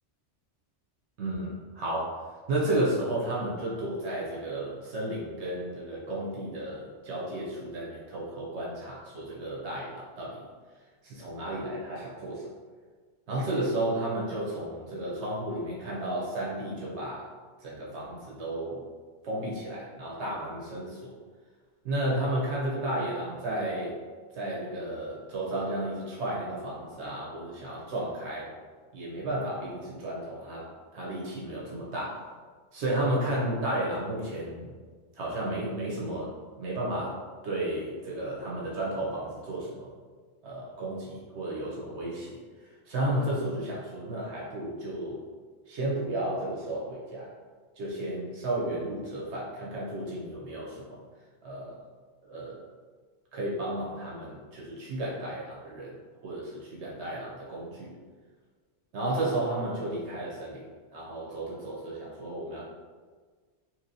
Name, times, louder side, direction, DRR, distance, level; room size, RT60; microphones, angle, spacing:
voice 1, 1.2-2.2 2.5-10.4 11.0-12.5 13.3-17.3 17.6-18.8 19.2-21.1 21.8-24.0 24.3-28.5 28.9-32.2 32.7-34.7 35.1-39.9 40.4-45.2 45.7-47.3 47.8-51.0 51.4-51.8 52.2-52.6 53.3-56.0 56.2-57.9 58.9-60.6 60.9-62.6, right 1 dB, 75° right, -5 dB, 1.0 m, -33 dB
2.9 x 2.9 x 2.6 m, 1.5 s
omnidirectional pair, 1.2 m